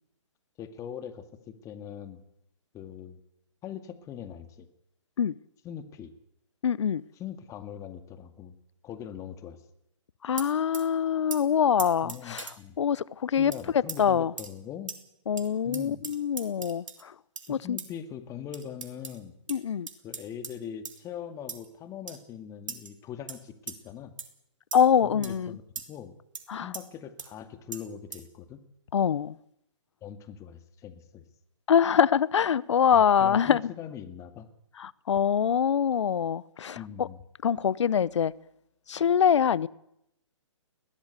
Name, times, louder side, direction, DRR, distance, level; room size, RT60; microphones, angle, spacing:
voice 1, 0.6-2.2 2.7-3.2 3.6-4.7 5.6-6.1 7.2-8.5 8.8-9.6 12.0-12.8 13.4-14.9 15.6-16.0 17.5-19.3 20.0-24.1 25.0-25.6 25.9-26.2 26.6-28.6 30.0-31.2 32.9-34.5 36.8-37.2, left 9 dB, 20° left, 1.9 m, -41 dB
voice 2, 6.6-7.0 10.2-14.3 15.3-17.1 17.5-17.8 19.5-19.9 24.7-25.6 26.5-26.7 28.9-29.4 31.7-33.7 34.8-37.1 37.4-38.3 38.9-39.7, left 8 dB, 65° left, 0.8 m, -24 dB
sound 1, 10.4-10.9 11.3-11.4 11.8-12.6 13.5-13.6 13.9-14.0 14.4-14.5 14.9-15.0 15.4-15.5 15.7-17.0 17.4-17.5 17.8-17.9 18.5-19.2 19.5-19.6 19.9-20.5 20.9-21.0 21.5-21.7 22.1-22.2 22.7-22.9 23.3-23.4 23.7-23.8 24.2-24.3 24.7-24.9 25.2-25.4 25.8-25.9 26.4-26.5 26.7-26.8 27.2-27.3 27.7-27.8 28.1-28.2, right 5 dB, 80° right, 3.3 m, -38 dB
21.0 x 17.0 x 8.3 m
hypercardioid pair, 140°, 16 cm